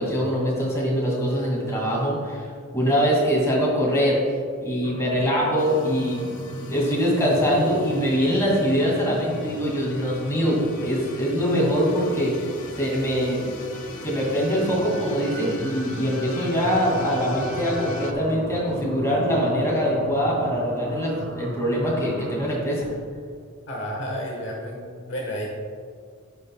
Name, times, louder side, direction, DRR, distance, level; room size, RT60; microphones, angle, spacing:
voice 1, 0.0-2.4 2.7-4.2 4.6-6.2 6.7-12.4 12.8-13.4 14.0-22.8, equal, 15° left, -5 dB, 2.1 m, -23 dB
sound 1, 4.8-22.5, right 1 dB, 65° right, 0.7 m, -38 dB
sound 2, 5.6-18.1, left 2 dB, 85° left, 0.8 m, -39 dB
voice 2, 23.7-25.5, equal, 60° left, -1 dB, 1.1 m, -31 dB
16.0 x 5.4 x 2.2 m, 2.1 s
head